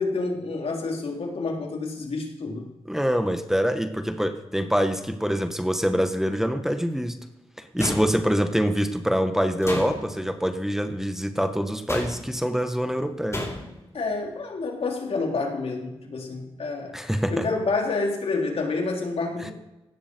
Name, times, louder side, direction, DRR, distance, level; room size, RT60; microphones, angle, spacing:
voice 1, 0.0-2.7 13.9-17.0 17.3-19.5, left 3 dB, 75° left, 1 dB, 3.8 m, -28 dB
voice 2, 2.9-7.2 7.6-13.4 16.9-17.5, equal, 5° right, 7 dB, 1.8 m, -25 dB
sound 1, 7.8-8.5 9.6-10.3 11.9-12.5 13.3-13.9, left 1 dB, 25° left, 5.4 m, -33 dB
17.5 x 12.0 x 4.7 m, 1.0 s
cardioid pair, 45°, 10 cm